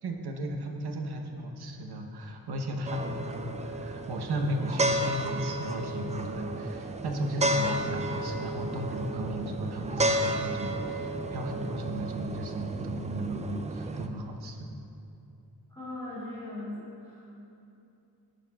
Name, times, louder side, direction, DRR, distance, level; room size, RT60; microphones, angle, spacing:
voice 1, 0.0-14.7, right 1 dB, 80° right, 3 dB, 1.0 m, -35 dB
sound 1, 2.9-14.1, right 1 dB, 20° right, 0.3 m, -32 dB
voice 2, 15.7-17.3, left 1 dB, 10° left, -12 dB, 2.3 m, -39 dB
11.5 x 11.0 x 2.3 m, 2.7 s
wide cardioid pair, 140°, 38 cm